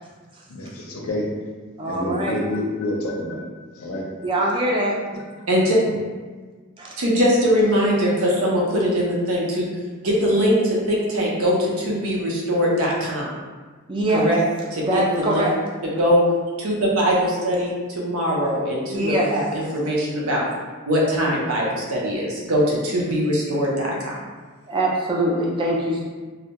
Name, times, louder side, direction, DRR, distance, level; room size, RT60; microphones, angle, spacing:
voice 1, 0.5-1.3 1.8-3.5 3.7-4.1, left 1 dB, 75° left, -2 dB, 0.5 m, -28 dB
voice 2, 1.8-2.3 4.2-5.0 6.8-6.9 13.9-14.2 14.8-15.5 18.9-19.3 24.7-26.0, right 1 dB, 20° right, -3 dB, 0.3 m, -23 dB
voice 3, 5.5-5.8 7.0-9.7 10.0-13.3 14.1-14.4 14.7-15.4 16.0-16.2 16.6-20.5 20.8-24.2, equal, 75° right, -4 dB, 0.6 m, -21 dB
2.2 x 2.0 x 2.8 m, 1.4 s
head